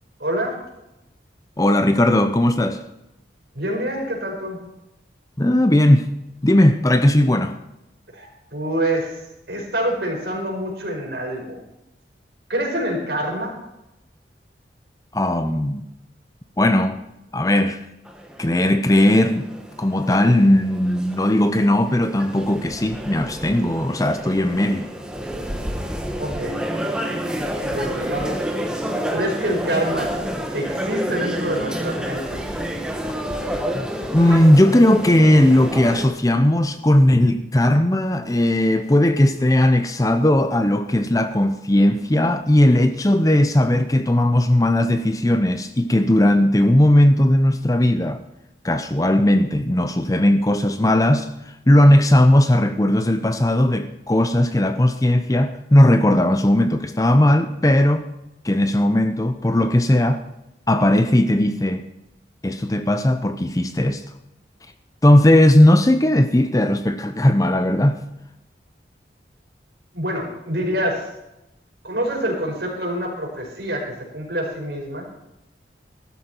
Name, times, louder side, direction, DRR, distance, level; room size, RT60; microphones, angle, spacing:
voice 1, 0.2-0.6 3.5-4.6 8.1-11.6 12.5-13.6 26.1-26.6 27.6-28.5 29.1-30.1 30.5-32.4 69.9-71.1 71.8-75.1, right 1 dB, 65° right, 5.1 m, -26 dB
voice 2, 1.6-2.8 5.4-6.1 6.4-7.6 15.1-15.9 16.6-17.0 17.3-17.8 18.4-19.5 19.8-24.9 33.7-33.9 34.1-48.2 48.6-51.3 51.7-58.0 58.4-60.2 60.7-61.8 62.4-64.0 65.0-68.0, left 1 dB, 20° left, 0.6 m, -17 dB
sound 1, 18.0-36.1, equal, 5° right, 1.4 m, -29 dB
15.0 x 13.0 x 4.5 m
head